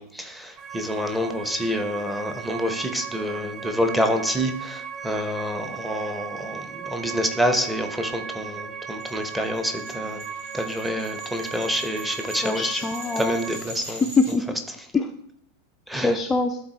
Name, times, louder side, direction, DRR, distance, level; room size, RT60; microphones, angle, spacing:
voice 1, 0.0-10.2 10.5-12.8 13.2-14.0 14.7-14.8 15.9-16.2, equal, 5° right, 6 dB, 0.9 m, -27 dB
sound 1, 0.6-13.6, right 6 dB, 35° right, 0.6 m, -37 dB
sound 2, 9.0-14.3, equal, 60° right, 2.5 m, -42 dB
voice 2, 12.4-13.4 13.9-14.4 14.9-15.1 16.0-16.6, left 4 dB, 15° left, 5 dB, 0.4 m, -23 dB
11.5 x 3.8 x 3.0 m, 0.72 s
figure-of-eight pair, 90°, 0 cm